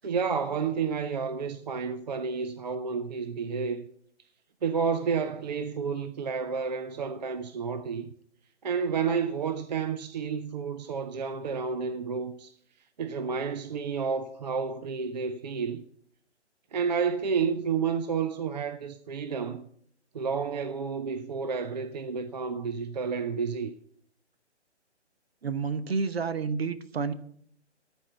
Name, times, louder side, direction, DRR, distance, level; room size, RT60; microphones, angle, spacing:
voice 1, 0.0-3.9 4.6-8.1 8.6-12.5 13.0-15.9 16.7-19.7 20.1-23.7, right 5 dB, 40° right, 0.5 m, -30 dB
voice 2, 25.4-27.1, right 5 dB, 60° right, 1.0 m, -29 dB
14.0 x 4.6 x 7.8 m
figure-of-eight pair, 140°, 35 cm